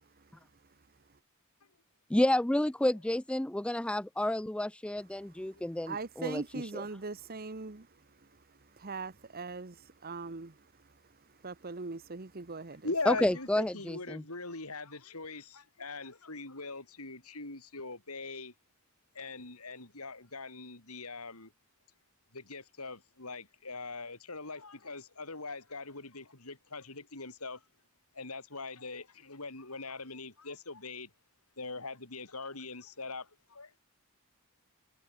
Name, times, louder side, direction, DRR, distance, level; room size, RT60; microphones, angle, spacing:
voice 1, 2.1-6.4 13.1-14.2, left 1 dB, 5° left, 0.3 m, -30 dB
voice 2, 5.9-7.9 8.7-10.7 11.4-12.9, right 3 dB, 45° right, 1.1 m, -40 dB
voice 3, 12.8-18.5 19.1-21.5 22.3-27.6 28.1-31.1 31.6-33.8, left 3 dB, 85° left, 6.1 m, -41 dB
head